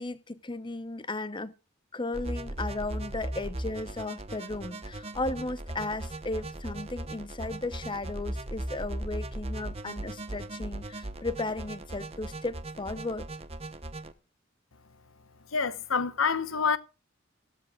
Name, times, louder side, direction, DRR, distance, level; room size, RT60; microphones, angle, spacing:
voice 1, 0.0-1.5 1.9-13.3, left 2 dB, 25° left, 0.8 m, -35 dB
sound 1, 2.1-14.1, right 1 dB, 30° right, 1.0 m, -38 dB
voice 2, 15.5-16.8, left 5 dB, 85° left, 1.0 m, -27 dB
15.5 x 13.0 x 2.4 m
head